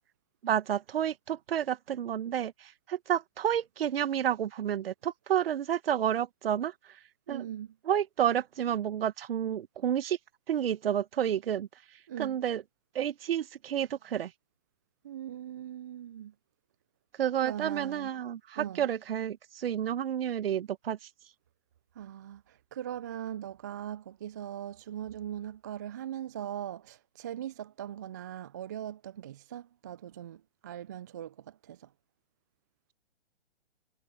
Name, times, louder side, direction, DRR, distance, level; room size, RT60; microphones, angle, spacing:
voice 1, 0.4-6.7 7.3-7.5 7.8-10.2 10.5-11.7 12.2-12.6 12.9-14.3 17.2-21.0, right 10 dB, 55° right, 1.3 m, -30 dB
voice 2, 7.3-7.7 12.1-12.4 15.0-16.3 17.4-18.1 18.6-18.9 22.0-31.9, right 10 dB, 15° right, 0.4 m, -40 dB
figure-of-eight pair, 125°, 35 cm